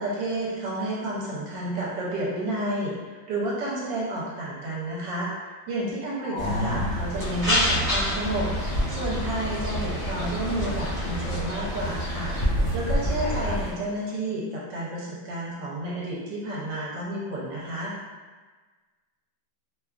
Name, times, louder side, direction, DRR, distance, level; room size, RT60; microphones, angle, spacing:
voice 1, 0.0-5.3 5.7-8.5 8.9-12.3 12.7-17.9, right 1 dB, 75° right, -5 dB, 1.2 m, -31 dB
voice 2, 6.2-7.0 13.2-13.6, left 1 dB, 75° left, -4 dB, 1.2 m, -30 dB
sound 1, 6.4-13.7, equal, 35° left, 0.8 m, -29 dB
sound 2, 7.2-12.5, left 1 dB, 45° right, 1.0 m, -30 dB
3.0 x 2.3 x 2.3 m, 1.4 s
omnidirectional pair, 2.0 m